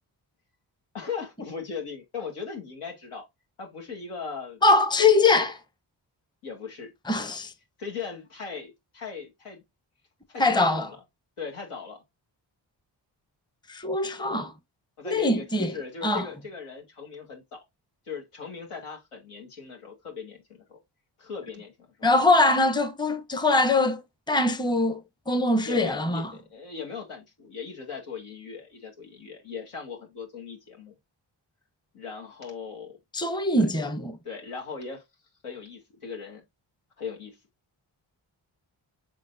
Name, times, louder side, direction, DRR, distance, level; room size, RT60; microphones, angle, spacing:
voice 1, 0.9-3.2 3.6-4.6 6.4-6.9 7.8-9.6 10.3-11.0 11.4-12.0 15.0-17.6 18.1-20.4 20.7-20.8 21.2-21.7 22.0-22.1 25.6-31.0 31.9-33.0 33.6-33.7 34.2-35.0 35.4-36.4 37.0-37.4, left 5 dB, 85° left, 1.9 m, -38 dB
voice 2, 4.6-5.6 7.1-7.5 10.4-10.9 13.7-14.5 15.0-15.7 16.0-16.3 22.0-24.0 24.3-26.3 33.1-34.2, left 2 dB, 10° left, 0.8 m, -22 dB
5.3 x 3.8 x 2.6 m
supercardioid pair, 45°, 50 cm